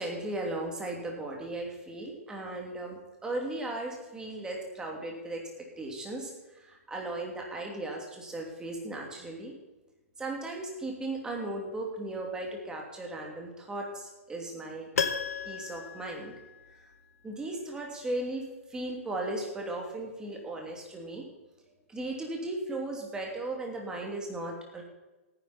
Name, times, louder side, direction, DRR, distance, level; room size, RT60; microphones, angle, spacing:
voice 1, 0.0-9.5 10.2-14.9 15.4-16.3 17.2-21.3 21.9-24.8, right 2 dB, 10° right, 0 dB, 2.8 m, -36 dB
Piano, 15.0-17.0 17.3-17.4, left 6 dB, 85° left, 1.2 m, -34 dB
16.5 x 9.9 x 4.3 m, 1.1 s
hypercardioid pair, 140°, 8 cm